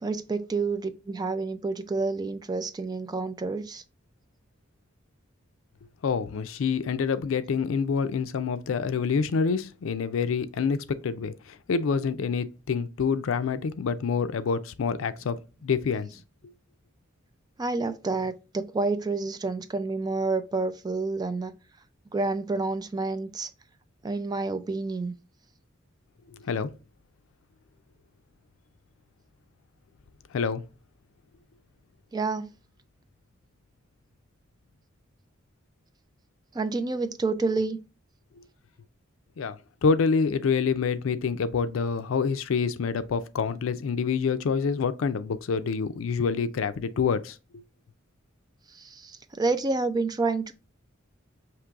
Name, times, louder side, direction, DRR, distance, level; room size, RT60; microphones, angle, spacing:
voice 1, 0.0-3.8 17.6-21.5 22.1-23.5 24.0-25.1 32.1-32.4 36.5-37.8 48.8-50.5, right 3 dB, 20° right, 0.3 m, -29 dB
voice 2, 6.0-10.8 11.0-11.3 11.7-15.4 15.6-16.1 26.5-26.7 30.3-30.6 39.4-47.4, left 5 dB, 75° left, 0.4 m, -27 dB
5.9 x 2.9 x 2.3 m
head